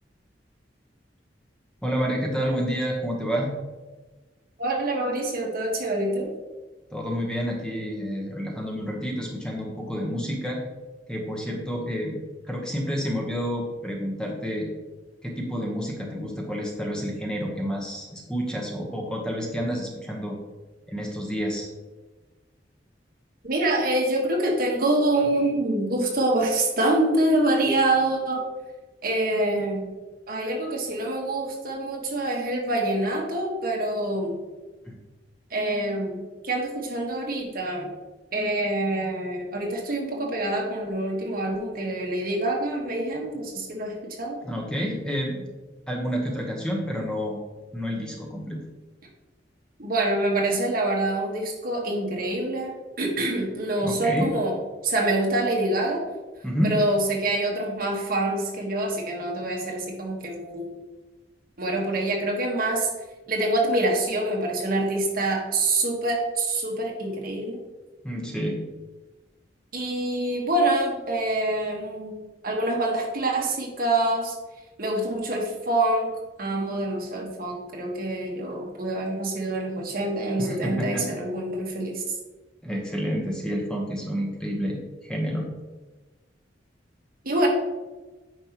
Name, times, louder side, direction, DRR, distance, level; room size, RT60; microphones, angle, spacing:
voice 1, 1.8-3.5 6.9-10.6 11.1-12.2 12.5-14.7 15.2-20.4 20.9-21.7 34.8-35.0 44.4-45.5 45.9-47.4 47.7-48.6 53.8-54.3 56.4-56.7 68.0-68.6 80.4-81.1 82.6-85.5, equal, 5° left, -1 dB, 1.1 m, -29 dB
voice 2, 4.6-6.3 23.4-28.4 29.0-29.9 30.3-34.4 35.5-37.9 38.3-44.4 49.8-54.5 54.8-56.0 56.6-60.8 61.6-62.9 63.3-67.6 69.7-72.1 72.4-74.3 74.8-76.1 76.4-82.0 87.2-87.5, right 1 dB, 55° right, 0 dB, 1.5 m, -26 dB
9.0 x 5.5 x 3.0 m, 1.2 s
head